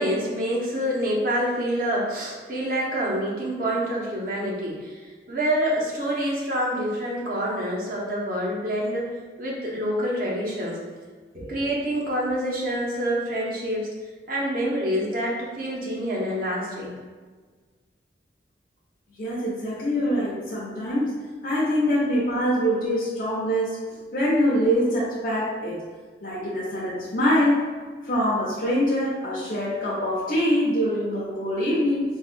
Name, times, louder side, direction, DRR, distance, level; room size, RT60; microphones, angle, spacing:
voice 1, 0.0-9.1 9.4-10.8 11.3-13.9 14.3-16.9, equal, 50° right, -4 dB, 0.6 m, -27 dB
voice 2, 19.2-21.1 21.4-23.8 24.1-25.8 26.2-27.6 28.0-32.0, equal, 50° left, -7 dB, 0.5 m, -24 dB
3.5 x 2.1 x 2.5 m, 1.5 s
head